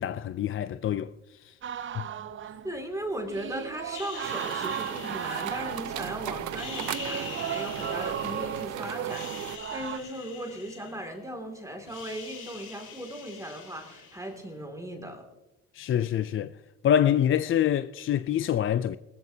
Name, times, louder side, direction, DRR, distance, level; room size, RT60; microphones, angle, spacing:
voice 1, 0.0-1.6 2.0-2.1 15.7-16.5 16.8-19.0, left 10 dB, 45° left, 0.4 m, -26 dB
sound 1, 1.6-10.0, right 9 dB, 40° right, 0.6 m, -36 dB
voice 2, 2.6-15.3, right 1 dB, 10° right, 2.4 m, -37 dB
sound 2, 3.9-6.1 6.5-8.7 9.0-11.4 11.7-14.5, left 6 dB, 85° left, 2.5 m, -44 dB
sound 3, 4.2-9.6, right 11 dB, 75° right, 0.7 m, -37 dB
19.0 x 14.0 x 2.8 m
cardioid pair, 90°, 30 cm